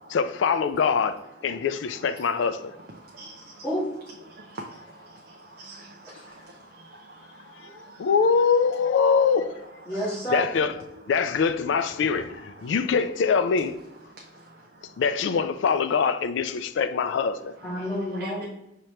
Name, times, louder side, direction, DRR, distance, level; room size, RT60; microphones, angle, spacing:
voice 1, 0.1-2.8 8.0-9.6 10.3-10.7 11.1-13.7 15.0-17.5, left 5 dB, 80° left, 0.3 m, -23 dB
voice 2, 3.0-3.6 4.3-6.4 6.7-8.0 18.2-18.5, right 2 dB, 55° right, 0.5 m, -45 dB
voice 3, 9.9-10.5 17.6-18.5, equal, 10° left, 1.5 m, -29 dB
5.8 x 2.8 x 3.2 m
head